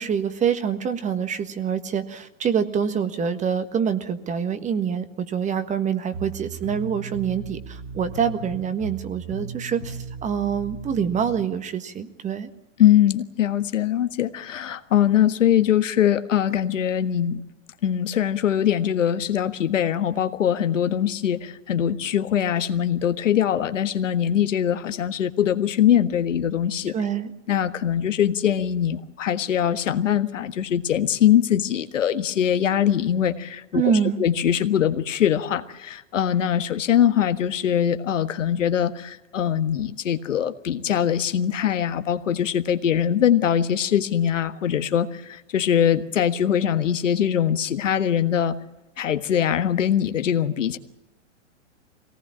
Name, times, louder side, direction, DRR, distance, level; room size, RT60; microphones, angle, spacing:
voice 1, 0.0-12.5 26.9-27.3 33.7-34.2, right 7 dB, 20° right, 10 dB, 1.5 m, -25 dB
sound 1, 6.1-11.4, right 5 dB, 45° right, 4.0 m, -37 dB
voice 2, 12.8-17.4 17.8-26.9 27.5-33.9 34.2-48.6 49.0-50.8, left 10 dB, 75° left, 10 dB, 1.6 m, -22 dB
23.0 x 18.5 x 8.8 m, 1.0 s
hypercardioid pair, 120°, 38 cm